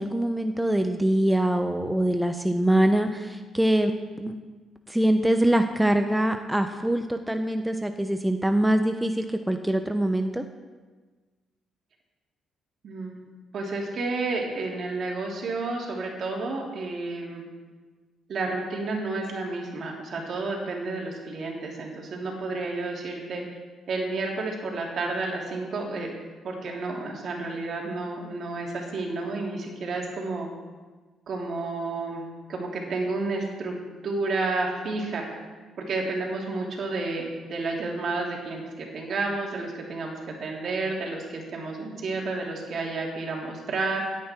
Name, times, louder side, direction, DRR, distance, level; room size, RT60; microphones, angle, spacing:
voice 1, 0.0-3.9 4.2-4.3 4.9-10.4, right 1 dB, 5° right, 6 dB, 0.9 m, -24 dB
voice 2, 12.8-13.2 13.5-17.4 18.3-23.4 23.9-26.1 26.4-30.5 31.3-32.2 32.5-33.8 34.0-35.3 35.8-44.2, right 3 dB, 60° right, 0 dB, 3.3 m, -31 dB
17.5 x 9.5 x 4.6 m, 1.4 s
supercardioid pair, 70°, 0 cm